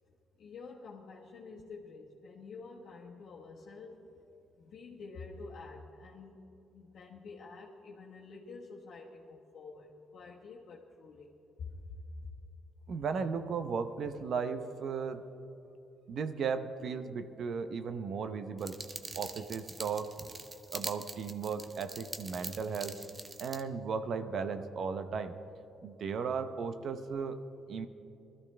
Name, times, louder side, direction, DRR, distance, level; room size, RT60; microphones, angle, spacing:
voice 1, 0.4-4.2 4.6-11.3 11.6-12.2, left 4 dB, 65° left, -5 dB, 1.4 m, -48 dB
voice 2, 12.9-15.2 16.1-18.8 19.2-20.1 20.7-23.0 23.4-25.4 25.8-27.9, right 5 dB, 60° right, 10 dB, 0.8 m, -36 dB
sound 1, 18.6-23.6, right 3 dB, 25° right, 0.7 m, -44 dB
19.5 x 14.0 x 3.4 m, 2.9 s
cardioid pair, 90°, 0 cm